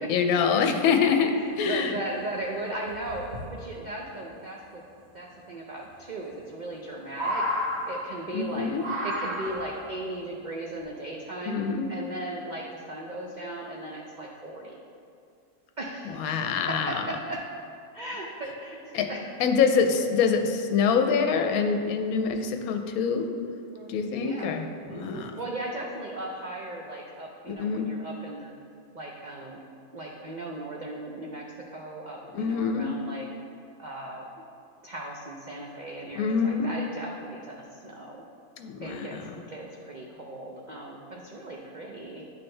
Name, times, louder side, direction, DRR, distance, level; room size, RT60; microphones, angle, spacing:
voice 1, 0.1-2.0 8.3-8.8 11.5-11.9 16.2-17.0 18.9-19.1 19.4-23.3 23.9-24.6 24.9-25.3 27.5-27.9 32.3-33.0 36.2-36.7 38.6-39.2, left 6 dB, 75° left, 5 dB, 1.0 m, -25 dB
voice 2, 1.3-4.8 5.1-8.7 9.0-11.6 11.9-14.8 15.8-17.5 17.9-19.3 23.7-24.6 24.9-28.5 28.9-29.6 29.9-33.3 33.8-34.4 34.8-38.2 38.8-42.3, right 1 dB, 70° right, -2 dB, 0.4 m, -37 dB
sound 1, 2.2-2.3 2.9-3.4 5.0-5.1 6.3-6.8 7.1-8.3 8.8-9.8 10.8-10.9, equal, 50° right, 1.5 m, -31 dB
10.0 x 4.4 x 3.2 m, 2.4 s
omnidirectional pair, 1.6 m